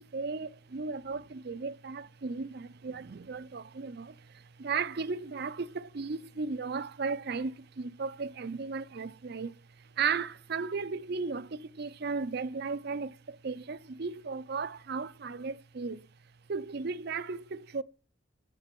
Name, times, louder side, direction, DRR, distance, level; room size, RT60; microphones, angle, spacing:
voice 1, 0.0-9.5 10.0-16.1 16.5-17.8, right 4 dB, 55° right, 0.5 m, -35 dB
11.0 x 9.0 x 7.6 m
head